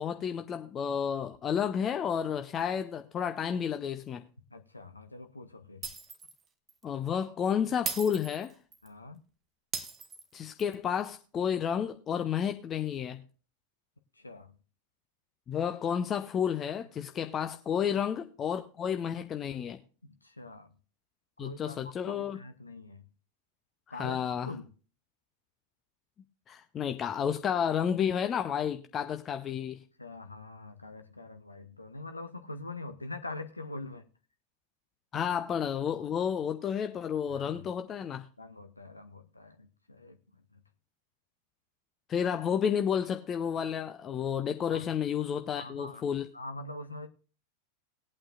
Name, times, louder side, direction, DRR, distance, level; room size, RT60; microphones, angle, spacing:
voice 1, 0.0-4.2 6.8-8.5 10.3-13.2 15.5-19.8 21.4-22.4 23.9-24.5 26.5-29.8 35.1-38.2 42.1-46.3, left 8 dB, 25° left, 0.6 m, -31 dB
voice 2, 4.5-5.8 8.8-9.2 14.2-14.5 17.9-18.0 20.2-20.7 21.4-23.0 23.9-24.7 30.0-34.1 37.3-37.6 38.4-40.2 40.5-40.6 44.7-44.9 45.5-46.0 46.3-47.1, left 2 dB, 80° left, 0.7 m, -44 dB
Shatter, 5.8-6.4 6.7-6.8 7.8-8.9 9.7-10.7, right 6 dB, 20° right, 1.1 m, -38 dB
19.5 x 8.7 x 2.4 m
figure-of-eight pair, 90°, 0 cm